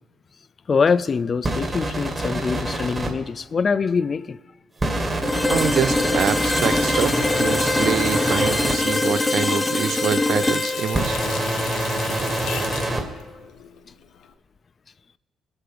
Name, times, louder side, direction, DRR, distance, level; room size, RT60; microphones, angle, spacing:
voice 1, 0.7-4.4, left 5 dB, 40° left, 0.4 m, -23 dB
sound 1, 1.4-3.1 4.8-8.7 10.9-13.0, right 2 dB, 25° right, 2.3 m, -26 dB
sound 2, 5.2-13.1, left 2 dB, 15° left, 0.8 m, -24 dB
voice 2, 5.5-11.2, right 9 dB, 70° right, 0.4 m, -26 dB
Water tap faucet, 5.9-14.3, left 8 dB, 85° left, 1.0 m, -35 dB
23.0 x 8.0 x 5.1 m
cardioid pair, 90°, 0 cm